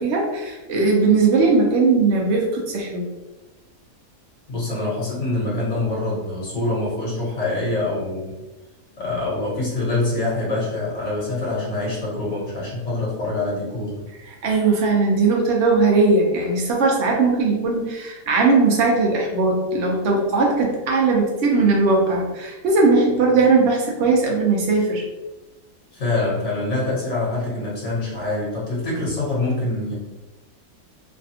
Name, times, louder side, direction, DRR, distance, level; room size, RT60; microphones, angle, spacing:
voice 1, 0.0-3.0 14.4-25.0, right 3 dB, 60° right, -1 dB, 0.9 m, -19 dB
voice 2, 4.5-8.3 9.0-14.0 25.9-29.9, left 2 dB, 55° left, -6 dB, 1.4 m, -25 dB
3.2 x 2.3 x 2.7 m, 1.1 s
omnidirectional pair, 1.5 m